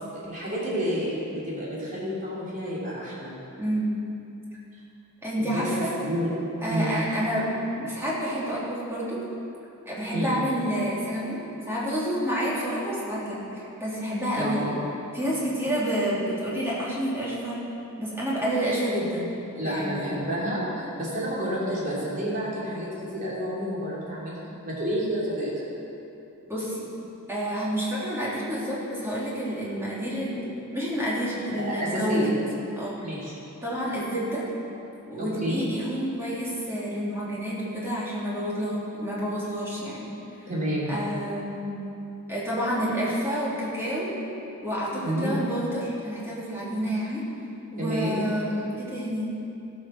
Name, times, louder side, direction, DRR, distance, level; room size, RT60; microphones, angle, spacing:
voice 1, 0.3-3.3 5.4-5.7 6.0-6.3 6.7-6.9 10.1-10.4 14.4-14.7 19.5-25.5 31.5-32.3 33.0-33.3 35.2-35.6 40.5-41.0 45.0-45.3 47.8-48.3, equal, 35° right, -7 dB, 3.3 m, -29 dB
voice 2, 3.6-3.9 5.2-5.9 6.6-7.5 7.8-9.2 9.9-11.4 11.7-14.7 15.1-17.6 18.0-19.3 19.6-20.1 26.5-26.9 27.3-30.4 30.7-32.3 32.8-33.0 33.6-34.4 35.1-40.1 40.9-41.8 42.3-44.2 44.6-47.2 47.7-49.3, equal, 10° right, -8 dB, 3.0 m, -29 dB
16.5 x 6.6 x 5.9 m, 2.8 s
head